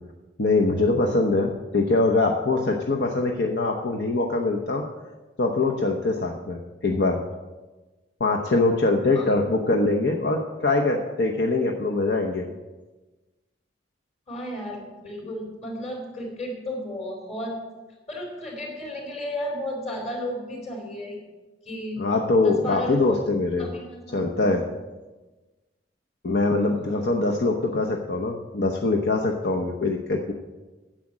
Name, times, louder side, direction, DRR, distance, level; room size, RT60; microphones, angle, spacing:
voice 1, 0.4-4.9 5.4-7.2 8.2-12.5 22.0-23.7 24.1-24.6 26.2-30.3, left 2 dB, 70° left, 1 dB, 0.9 m, -23 dB
voice 2, 14.3-17.7 18.1-21.2 21.6-22.0 22.4-23.2 23.6-24.6 26.8-27.0, left 1 dB, 40° left, 1 dB, 3.8 m, -33 dB
10.0 x 7.7 x 7.3 m, 1.2 s
head